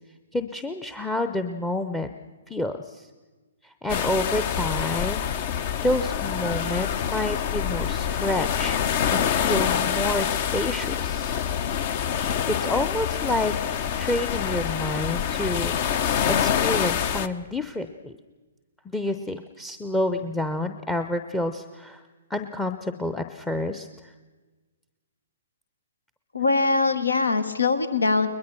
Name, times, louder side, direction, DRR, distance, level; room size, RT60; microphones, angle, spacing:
voice 1, 0.3-2.1 2.5-3.1 3.6-5.3 5.6-11.4 12.5-13.5 14.0-18.1 18.8-22.0 22.3-24.1, left 1 dB, 5° left, 10 dB, 0.7 m, -29 dB
sound 1, 3.9-17.3, left 8 dB, 40° left, 0.8 m, -26 dB
voice 2, 26.3-28.3, left 3 dB, 80° left, 12 dB, 1.3 m, -22 dB
21.5 x 21.0 x 6.2 m, 1.3 s
figure-of-eight pair, 125°, 0 cm